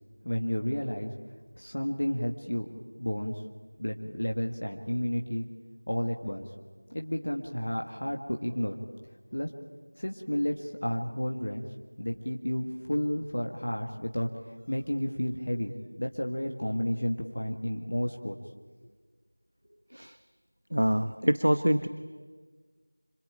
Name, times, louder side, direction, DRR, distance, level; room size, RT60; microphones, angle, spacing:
voice 1, 0.2-1.1 1.6-2.7 3.0-3.4 3.8-5.5 5.9-6.5 6.9-8.7 9.3-9.5 10.0-11.6 12.0-14.3 14.7-15.7 16.0-18.4, equal, 40° left, 2 dB, 1.8 m, -31 dB
voice 2, 20.7-21.9, equal, 60° right, 11 dB, 1.2 m, -25 dB
27.0 x 21.5 x 9.0 m, 1.5 s
figure-of-eight pair, 175°, 0 cm